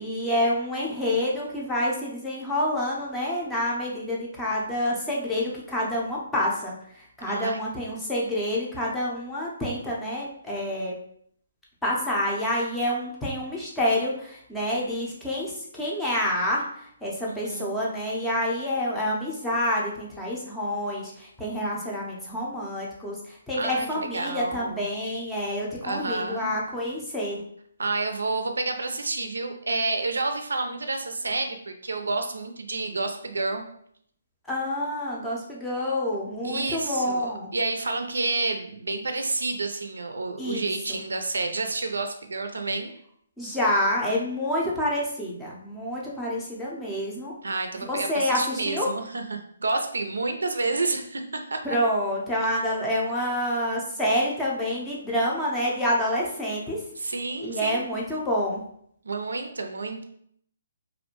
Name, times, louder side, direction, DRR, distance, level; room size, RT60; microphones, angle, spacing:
voice 1, 0.0-11.0 11.8-27.4 34.5-37.5 40.4-41.0 43.4-47.3 47.8-48.9 51.6-56.8 57.4-58.6, left 1 dB, 5° left, -5 dB, 0.5 m, -28 dB
voice 2, 7.3-7.6 17.3-17.7 23.6-24.9 25.8-26.5 27.8-33.6 36.4-42.9 47.4-51.8 57.0-57.8 59.0-60.0, right 3 dB, 85° right, 5 dB, 0.4 m, -29 dB
2.4 x 2.1 x 2.9 m, 0.66 s
hypercardioid pair, 150°, 0 cm